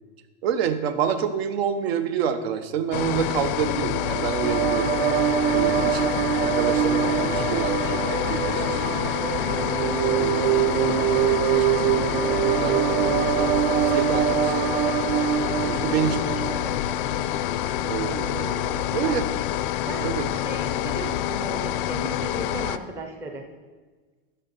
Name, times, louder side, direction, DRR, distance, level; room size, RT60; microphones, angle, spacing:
voice 1, 0.4-4.9 5.4-6.0 6.3-9.2 10.1-12.1 12.6-15.0 15.6-16.8 17.4-17.5 17.8-19.3 20.0-20.3, right 8 dB, 90° right, 10 dB, 0.9 m, -29 dB
sound 1, 2.9-22.8, left 12 dB, 60° left, 0.4 m, -27 dB
sound 2, 3.9-17.2, right 13 dB, 65° right, 0.5 m, -24 dB
voice 2, 5.6-6.0 15.6-16.1 18.7-19.2 19.8-23.5, right 3 dB, 10° right, 4 dB, 0.4 m, -36 dB
11.0 x 6.6 x 4.0 m, 1.4 s
supercardioid pair, 170°, 30 cm